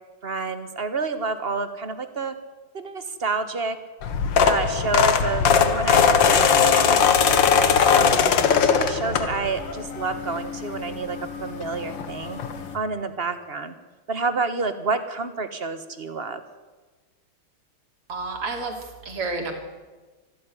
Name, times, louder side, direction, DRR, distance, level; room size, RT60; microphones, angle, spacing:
voice 1, 0.2-2.3 2.7-3.8 4.4-8.1 8.5-12.4 12.7-13.7 14.1-16.4, right 4 dB, 30° right, 10 dB, 1.4 m, -29 dB
sound 1, 4.0-9.7 10.1-10.4 11.6-11.7 11.9-12.1 12.4-12.5, left 6 dB, 60° left, 1.9 m, -19 dB
sound 2, 6.4-12.8, left 5 dB, 85° left, 2.9 m, -37 dB
voice 2, 18.1-19.5, right 3 dB, 85° right, 3 dB, 4.1 m, -30 dB
24.5 x 13.0 x 10.0 m, 1.3 s
omnidirectional pair, 2.4 m